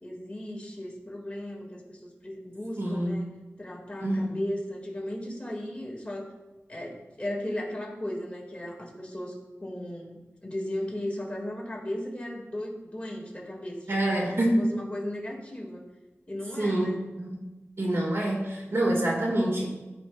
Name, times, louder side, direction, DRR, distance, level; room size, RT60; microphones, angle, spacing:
voice 1, 0.0-3.3 3.6-6.3 6.7-15.9 16.3-17.0, left 1 dB, 25° left, -2 dB, 2.0 m, -36 dB
voice 2, 2.8-3.2 4.0-4.4 13.9-14.6 16.6-17.4 17.8-19.7, right 1 dB, 65° right, -1 dB, 1.8 m, -26 dB
15.5 x 5.2 x 2.3 m, 1.1 s
wide cardioid pair, 85°, 5 cm